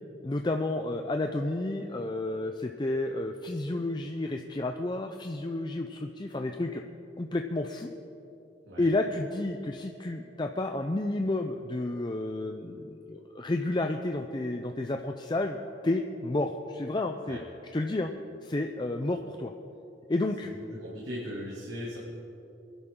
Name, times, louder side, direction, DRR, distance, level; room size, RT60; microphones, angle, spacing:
voice 1, 0.2-6.8 7.2-7.9 8.8-15.6 15.8-17.4 17.7-18.1 18.4-19.5 20.1-20.5, left 2 dB, 25° left, 4 dB, 0.5 m, -31 dB
voice 2, 20.7-22.0, equal, 70° right, -7 dB, 2.7 m, -38 dB
24.5 x 11.0 x 3.7 m, 2.9 s
head